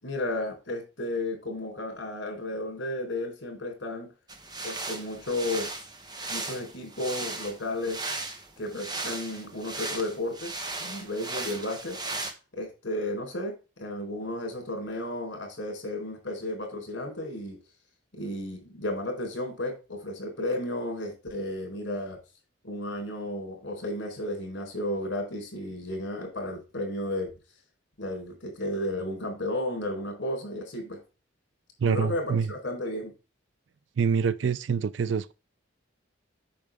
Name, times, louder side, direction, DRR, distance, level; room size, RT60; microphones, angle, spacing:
voice 1, 0.0-4.1 4.6-5.7 6.3-8.0 8.6-10.5 10.8-12.0 12.5-17.6 18.1-22.2 22.6-27.3 28.0-31.0 31.9-33.1, left 1 dB, 65° left, 4.1 m, -33 dB
sound 1, 4.3-12.3, right 3 dB, 20° right, 1.1 m, -37 dB
voice 2, 31.8-32.5 34.0-35.3, right 6 dB, 70° right, 0.4 m, -26 dB
8.6 x 6.4 x 3.5 m
head